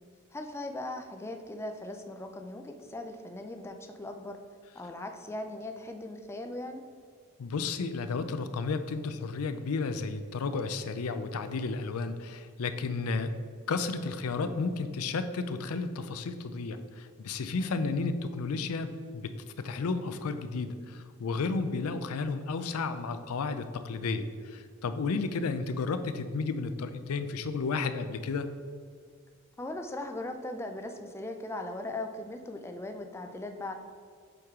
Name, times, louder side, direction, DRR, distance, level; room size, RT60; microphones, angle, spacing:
voice 1, 0.3-4.4 4.7-6.8 17.6-17.8 29.6-33.7, left 2 dB, 10° left, 5 dB, 0.4 m, -39 dB
voice 2, 7.4-13.3 13.7-28.5, left 4 dB, 85° left, 10 dB, 0.5 m, -32 dB
7.8 x 4.7 x 3.6 m, 2.1 s
head